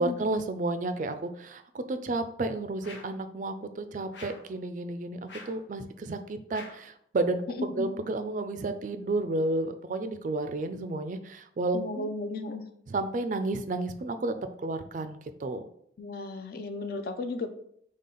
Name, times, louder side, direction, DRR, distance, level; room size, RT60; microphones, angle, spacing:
voice 1, 0.0-12.2 12.9-15.7, right 2 dB, 45° right, 10 dB, 0.3 m, -32 dB
sound 1, 2.8-3.2 4.1-4.5 5.3-5.7 6.5-6.9, left 3 dB, 80° left, 0.9 m, -47 dB
voice 2, 11.7-12.7 16.0-17.5, left 3 dB, 55° left, 8 dB, 0.4 m, -35 dB
4.2 x 3.2 x 3.8 m, 0.69 s
head